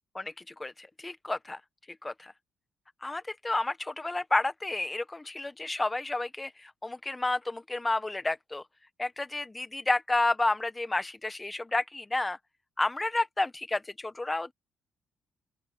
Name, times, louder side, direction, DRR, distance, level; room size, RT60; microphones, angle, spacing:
voice 1, 0.1-1.6 2.0-2.3 3.0-8.6 9.0-12.4 12.8-14.5, left 2 dB, 15° left, 1.4 m, -31 dB
open air
cardioid pair, 90°, 0 cm